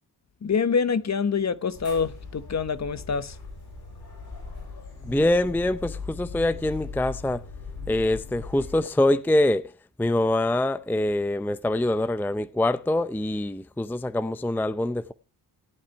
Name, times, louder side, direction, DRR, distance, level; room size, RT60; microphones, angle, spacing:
voice 1, 0.4-3.4, left 5 dB, 40° left, 1.0 m, -26 dB
sound 1, 1.7-8.8, left 4 dB, 60° left, 7.4 m, -39 dB
voice 2, 5.1-7.4 7.9-9.6 10.0-15.1, left 1 dB, 5° left, 0.6 m, -24 dB
17.5 x 8.7 x 3.3 m
supercardioid pair, 50°, 43 cm